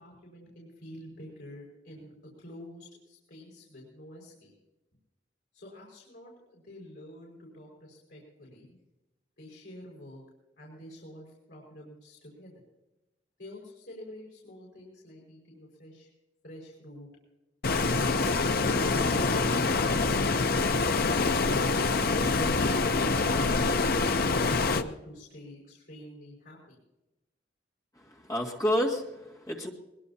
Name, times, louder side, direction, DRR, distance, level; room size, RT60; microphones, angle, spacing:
voice 1, 0.0-4.5 5.5-8.7 9.4-10.2 10.6-12.6 13.4-16.1 16.4-17.1 22.4-26.8, left 1 dB, 75° left, -3 dB, 5.4 m, -48 dB
Stream, 17.6-24.8, left 3 dB, 55° left, 0.7 m, -25 dB
voice 2, 28.0-29.7, equal, 20° left, 0 dB, 2.0 m, -30 dB
22.0 x 21.0 x 2.8 m, 0.99 s
head